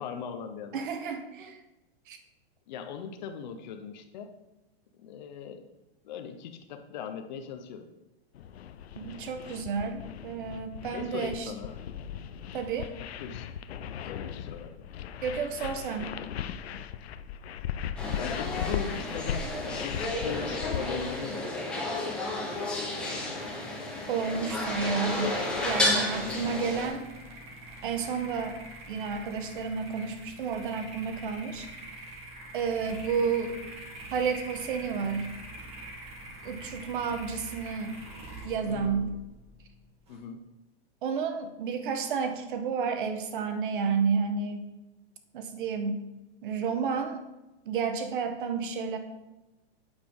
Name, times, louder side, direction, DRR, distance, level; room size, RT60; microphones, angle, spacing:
voice 1, 0.0-0.9 2.7-4.3 5.0-5.7 6.0-7.9 10.9-11.7 13.2-13.5 14.0-14.9 18.1-19.5 19.8-21.5 38.6-39.2 40.1-40.4, left 7 dB, 45° left, 6 dB, 1.0 m, -39 dB
voice 2, 0.7-1.6 2.1-2.2 8.9-11.5 12.5-12.9 15.2-16.1 24.1-25.4 25.6-27.1 27.8-28.6 28.9-31.7 32.5-33.5 34.1-35.3 36.4-37.9 38.4-39.1 41.0-44.7 45.3-46.0 46.4-47.2 47.6-49.0, right 5 dB, 55° right, 7 dB, 1.4 m, -31 dB
sound 1, 8.3-21.2, left 9 dB, 80° left, 0.7 m, -38 dB
sound 2, 18.0-26.9, left 2 dB, 5° left, 1.3 m, -32 dB
sound 3, 23.9-40.2, right 1 dB, 20° right, 1.8 m, -45 dB
8.7 x 8.5 x 4.0 m, 1.0 s
supercardioid pair, 170°, 31 cm